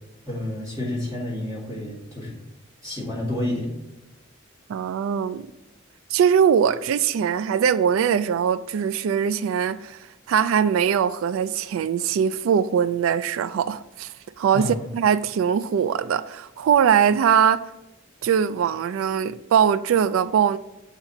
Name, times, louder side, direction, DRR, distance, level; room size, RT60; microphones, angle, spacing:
voice 1, 0.2-2.3 2.8-3.7 14.5-14.7, left 1 dB, 20° right, 2.2 m, -29 dB
voice 2, 4.7-5.5 6.1-10.0 10.3-17.6 18.2-20.6, right 8 dB, 85° right, 0.3 m, -21 dB
7.0 x 4.0 x 4.2 m
head